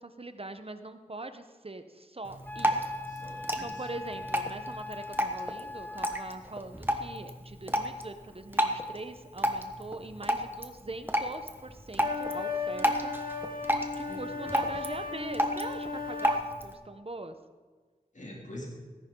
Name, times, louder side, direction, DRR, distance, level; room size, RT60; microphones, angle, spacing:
voice 1, 0.0-2.9 3.6-13.2 13.9-16.3 16.6-17.3, right 2 dB, 40° right, 9 dB, 0.9 m, -42 dB
Drip, 2.2-16.7, equal, 15° right, 1.2 m, -33 dB
Wind instrument woodwind instrument, 2.4-6.3, left 2 dB, 10° left, 0.6 m, -41 dB
voice 2, 3.1-3.7 14.1-14.7 18.1-18.7, left 1 dB, 60° left, -2 dB, 2.5 m, -45 dB
sound 1, 12.0-16.5, left 4 dB, 85° left, 1.3 m, -36 dB
18.0 x 10.5 x 3.8 m, 1.4 s
wide cardioid pair, 65°, 15 cm